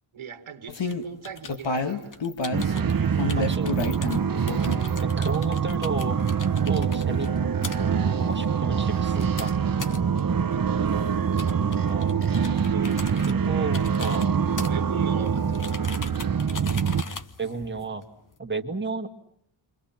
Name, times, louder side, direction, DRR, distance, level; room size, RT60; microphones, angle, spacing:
voice 1, 0.1-2.6 10.5-10.9 12.7-13.0 14.7-15.9, right 7 dB, 80° right, 1.8 m, -40 dB
sound 1, 0.7-1.0 1.4-2.7 3.2-4.2 4.5-5.0 5.3-5.4 5.7-5.8, left 3 dB, 65° left, 2.0 m, -29 dB
sound 2, 0.9-18.4, left 4 dB, 40° left, 1.2 m, -42 dB
sound 3, 2.5-17.0, right 7 dB, 45° right, 1.1 m, -25 dB
voice 2, 3.4-3.8 5.0-6.2 6.6-7.3 8.2-9.6 11.8-12.2 13.1-14.3 17.4-18.0 18.4-19.1, right 3 dB, 25° right, 2.0 m, -32 dB
30.0 x 24.5 x 5.9 m
wide cardioid pair, 160°, 47 cm